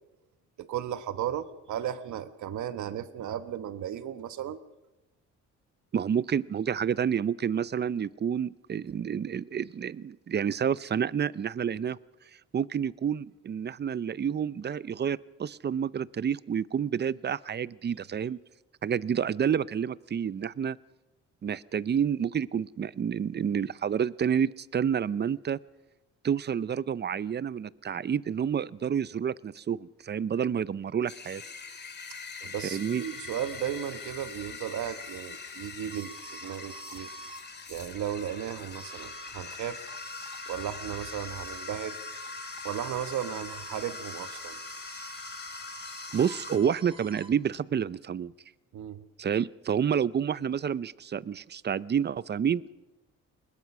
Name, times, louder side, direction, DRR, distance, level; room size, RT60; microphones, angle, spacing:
voice 1, 0.6-4.6 32.4-37.1 37.7-39.8 40.5-42.0 42.6-44.6 48.7-49.0, right 10 dB, 75° right, 11 dB, 1.4 m, -35 dB
voice 2, 5.9-12.0 12.5-18.4 18.8-20.8 21.4-25.6 26.2-31.4 32.7-33.0 46.1-48.3 49.2-52.7, right 8 dB, 35° right, 19 dB, 0.6 m, -29 dB
sound 1, 31.1-46.6, left 5 dB, 35° left, 2.3 m, -43 dB
sound 2, 32.6-47.3, right 2 dB, 15° right, 3.4 m, -48 dB
21.0 x 20.5 x 6.1 m, 1.0 s
cardioid pair, 90°, 30 cm